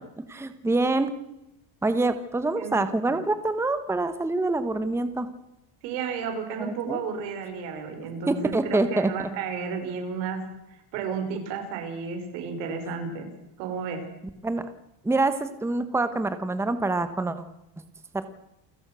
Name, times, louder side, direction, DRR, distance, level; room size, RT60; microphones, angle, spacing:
voice 1, 0.3-1.1 1.8-5.3 6.6-7.0 8.3-9.1 14.4-14.7 15.0-17.4 18.1-18.3, right 2 dB, 5° right, 10 dB, 1.3 m, -26 dB
voice 2, 2.6-3.2 5.8-13.3 13.6-14.1, right 5 dB, 85° right, 5 dB, 6.1 m, -33 dB
29.0 x 15.5 x 6.4 m, 0.90 s
cardioid pair, 150°, 50 cm